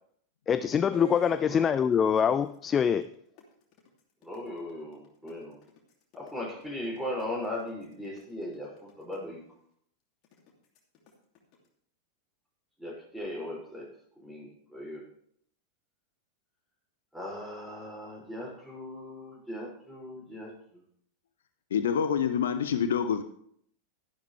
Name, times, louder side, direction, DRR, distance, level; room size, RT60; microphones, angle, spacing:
voice 1, 0.5-3.1, left 7 dB, 25° left, 14 dB, 0.4 m, -24 dB
sound 1, 0.9-1.5 1.9-9.2 10.2-11.7, right 2 dB, 40° left, 2.8 m, -48 dB
voice 2, 4.2-5.6 6.1-9.4 12.8-13.9 14.2-15.0 17.1-20.5, left 1 dB, 5° right, -3 dB, 6.1 m, -38 dB
voice 3, 21.7-23.2, left 7 dB, 60° left, 10 dB, 0.7 m, -26 dB
13.0 x 11.5 x 3.4 m, 0.66 s
figure-of-eight pair, 90°, 0 cm